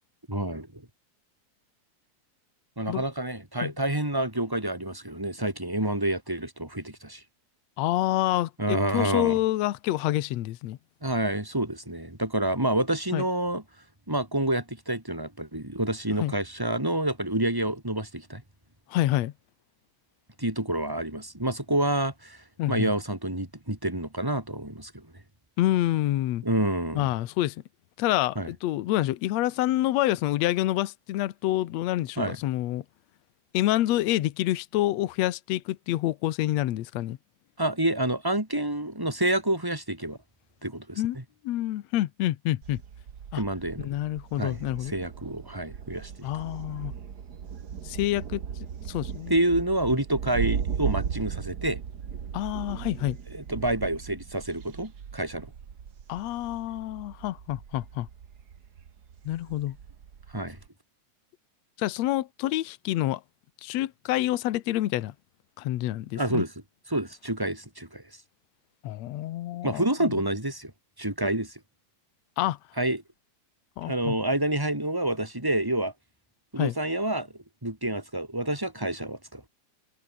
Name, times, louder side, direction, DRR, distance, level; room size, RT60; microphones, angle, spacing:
voice 1, 0.3-0.8 2.8-7.2 8.6-9.4 11.0-13.6 14.1-18.4 20.4-25.1 26.4-27.1 28.4-28.5 32.2-32.4 37.6-40.2 40.6-41.2 43.3-43.9 44.4-46.1 49.3-51.8 53.3-55.5 60.3-60.6 66.1-66.5 66.9-68.0 69.6-70.7 71.0-71.6 72.8-73.0 73.8-75.9 76.5-77.3 77.6-79.4, right 1 dB, 5° right, 4.3 m, -28 dB
voice 2, 7.8-10.8 13.1-13.2 16.2-16.3 18.9-19.3 22.6-22.9 25.6-26.4 27.0-27.6 28.0-32.8 33.5-37.2 41.0-41.2 41.4-42.8 43.3-43.4 43.8-44.9 46.2-46.9 47.8-48.4 48.9-49.4 52.3-53.2 56.1-58.1 59.3-59.8 61.8-63.2 63.6-65.1 65.6-66.4 68.8-70.2 72.4-72.6 73.8-74.2 76.6-76.7, left 15 dB, 70° left, 2.1 m, -27 dB
Thunder, 42.6-60.7, right 7 dB, 45° right, 1.5 m, -37 dB
omnidirectional pair, 3.3 m